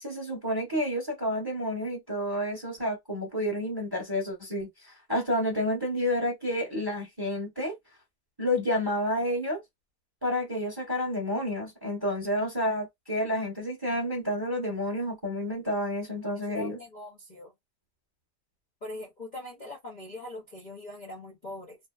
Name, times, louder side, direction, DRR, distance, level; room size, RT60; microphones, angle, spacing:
voice 1, 0.0-7.8 8.4-9.6 10.2-16.8, equal, 20° right, 0.8 m, -30 dB
voice 2, 16.2-17.5 18.8-21.8, left 2 dB, 40° left, 0.7 m, -41 dB
2.8 x 2.0 x 2.3 m
omnidirectional pair, 1.7 m